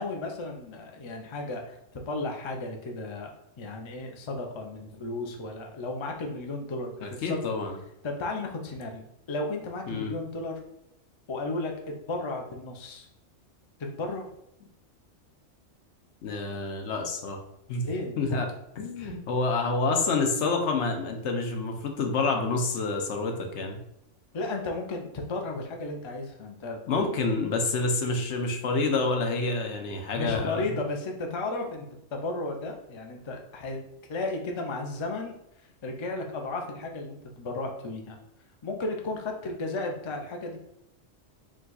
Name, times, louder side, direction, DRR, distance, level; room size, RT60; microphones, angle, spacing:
voice 1, 0.0-1.8 2.1-3.3 3.6-7.4 8.0-10.6 11.3-13.1 13.8-14.3 17.8-18.2 19.0-19.2 24.3-27.1 30.1-33.8 34.1-35.3 35.8-38.2 38.6-40.6, left 2 dB, 40° left, 2 dB, 0.4 m, -34 dB
voice 2, 7.0-7.8 9.9-10.1 16.2-17.4 17.7-17.9 18.2-18.5 18.8-23.8 26.9-30.7, left 3 dB, 70° left, 4 dB, 1.0 m, -28 dB
5.0 x 2.3 x 3.9 m, 0.82 s
omnidirectional pair, 1.3 m